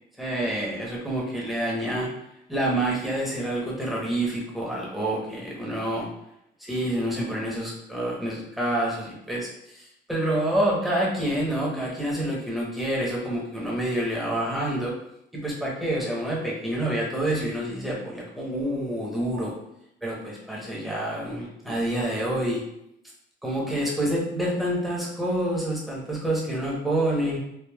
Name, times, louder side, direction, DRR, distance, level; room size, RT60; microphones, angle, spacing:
voice 1, 0.2-2.1 2.5-6.1 6.6-14.9 15.3-19.5 20.0-22.6 23.4-27.4, right 1 dB, ahead, -4 dB, 0.9 m, -27 dB
3.3 x 2.1 x 2.2 m, 0.79 s
cardioid pair, 90°, 20 cm